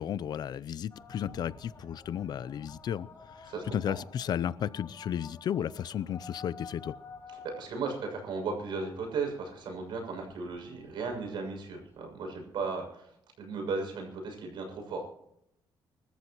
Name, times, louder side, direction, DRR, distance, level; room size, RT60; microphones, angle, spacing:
voice 1, 0.0-3.1 3.4-6.9, left 9 dB, 60° left, 0.5 m, -34 dB
sound 1, 0.9-12.7, left 4 dB, 35° left, 5.2 m, -52 dB
voice 2, 3.4-4.0 7.3-13.1 13.4-15.1, right 4 dB, 75° right, 6.7 m, -36 dB
25.0 x 14.0 x 3.0 m
cardioid pair, 140°, 8 cm